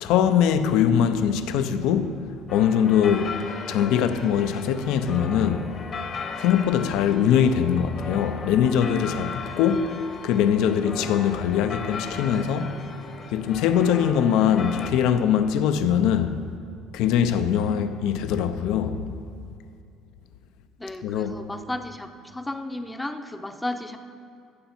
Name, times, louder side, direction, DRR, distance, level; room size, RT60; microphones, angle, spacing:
voice 1, 0.0-2.2 2.5-3.4 3.7-5.7 6.4-9.9 10.2-12.8 13.3-16.4 16.9-19.1 21.0-21.3, left 8 dB, 75° left, 0.6 m, -22 dB
sound 1, 2.5-14.9, left 5 dB, 40° left, 1.0 m, -37 dB
voice 2, 20.8-24.0, left 1 dB, 10° left, 0.7 m, -33 dB
15.0 x 6.9 x 4.4 m
supercardioid pair, 105°, 0 cm